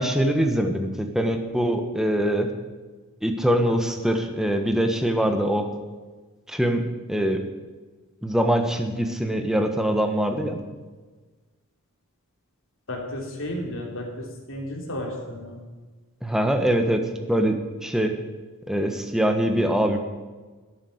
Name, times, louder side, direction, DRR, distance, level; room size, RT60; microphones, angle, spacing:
voice 1, 0.0-2.5 3.2-5.7 6.5-7.4 8.2-10.6 16.2-17.0 17.3-18.1 18.7-20.0, right 1 dB, ahead, 4 dB, 1.3 m, -23 dB
voice 2, 12.9-15.6, left 1 dB, 60° left, 0 dB, 3.4 m, -33 dB
11.5 x 10.0 x 7.9 m, 1.3 s
head